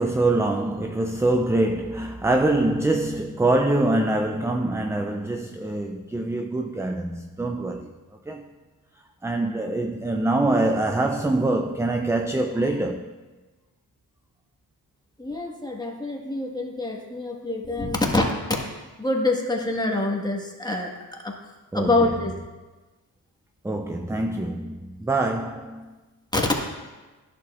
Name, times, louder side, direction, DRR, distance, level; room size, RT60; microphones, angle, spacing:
voice 1, 0.0-7.9 8.3-8.5 9.2-13.1 21.7-22.0 23.6-26.0, right 2 dB, 5° right, 0.4 m, -24 dB
voice 2, 15.2-18.6 19.0-21.3 21.7-22.3 26.3-26.6, left 2 dB, 10° left, 1.5 m, -25 dB
11.0 x 6.8 x 2.4 m
cardioid pair, 55°, 40 cm